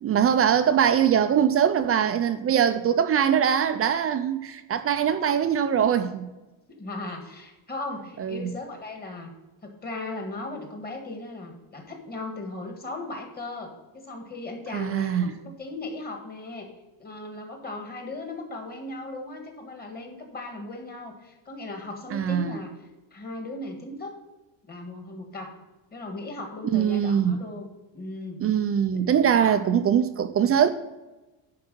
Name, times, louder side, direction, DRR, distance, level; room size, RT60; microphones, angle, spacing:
voice 1, 0.0-6.3 8.2-8.5 14.7-15.3 22.1-22.6 26.7-27.4 28.4-30.7, right 8 dB, 30° right, 0.4 m, -22 dB
voice 2, 6.7-9.3 9.6-16.7 17.0-22.7 23.1-24.2 24.7-25.5 25.9-27.7 27.9-28.4 28.9-29.0 29.3-29.6, left 2 dB, 20° left, 1.6 m, -37 dB
10.5 x 4.8 x 6.2 m
cardioid pair, 175°, 46 cm